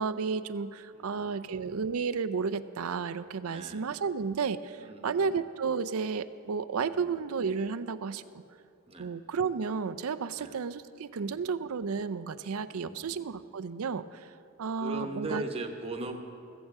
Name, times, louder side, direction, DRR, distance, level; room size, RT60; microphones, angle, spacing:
voice 1, 0.0-8.2 9.0-14.2 14.6-15.4, right 5 dB, 80° right, 12 dB, 0.5 m, -32 dB
voice 2, 0.9-1.4 3.5-3.9 4.8-5.3 6.9-7.2 8.9-9.1 10.4-10.5 11.2-11.5 12.7-13.1 14.8-16.2, right 2 dB, 25° right, 4 dB, 1.0 m, -40 dB
15.5 x 15.0 x 3.6 m, 2.5 s
head